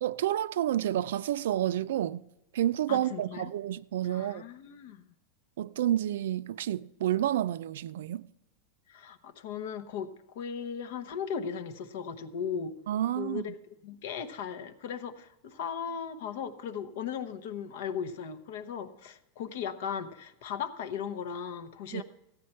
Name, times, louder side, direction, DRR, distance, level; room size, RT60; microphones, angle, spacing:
voice 1, 0.0-2.2 2.5-4.4 5.6-8.3 12.9-13.4 21.9-22.0, right 12 dB, 80° right, 0.4 m, -29 dB
voice 2, 2.9-3.5 4.0-5.1 8.9-10.1 10.3-12.7 13.2-22.0, left 7 dB, 55° left, 0.9 m, -37 dB
15.0 x 9.3 x 4.4 m
supercardioid pair, 175°, 0 cm